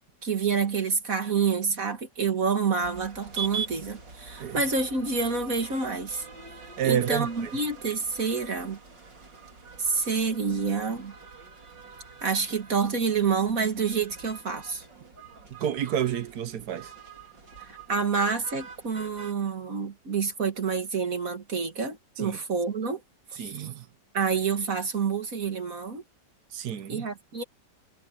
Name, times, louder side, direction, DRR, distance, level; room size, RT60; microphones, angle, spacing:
voice 1, 0.2-6.2 6.8-8.8 9.8-11.1 12.2-14.9 17.6-23.0 23.3-23.7 24.1-26.0 26.9-27.4, right 5 dB, 50° right, 2.3 m, -28 dB
sound 1, 2.8-19.3, right 6 dB, 90° right, 4.1 m, -44 dB
voice 2, 6.8-7.5 15.5-16.9 22.2-22.4 23.4-23.9 26.5-27.1, right 9 dB, 65° right, 1.3 m, -29 dB
omnidirectional pair, 1.9 m